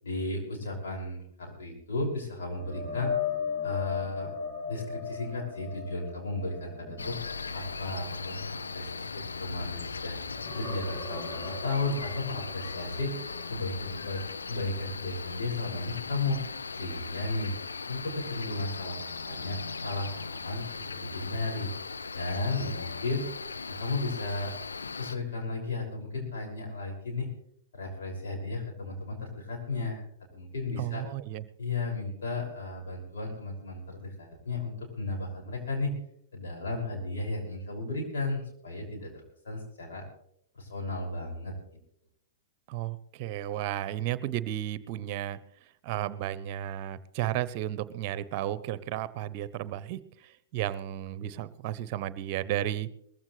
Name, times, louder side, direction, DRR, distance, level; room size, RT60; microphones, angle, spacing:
voice 1, 0.0-3.1 3.6-4.3 4.7-7.2 7.5-10.1 10.5-13.1 13.5-16.4 16.7-17.5 17.9-21.7 22.1-23.2 23.7-24.5 24.9-27.3 27.7-30.0 30.3-31.0 31.6-35.9 36.3-40.0 40.6-41.5, left 2 dB, 70° left, 0 dB, 6.3 m, -34 dB
sound 1, 2.5-9.9 10.2-14.1 14.5-14.7 18.1-18.2, left 6 dB, 40° left, 7.0 m, -38 dB
Cricket, 7.0-25.2, left 4 dB, 85° left, 0.5 m, -38 dB
voice 2, 30.8-31.4 42.7-45.4 45.8-52.9, right 12 dB, 45° right, 16 dB, 0.8 m, -33 dB
21.0 x 15.0 x 3.3 m, 0.68 s
hypercardioid pair, 110°, 0 cm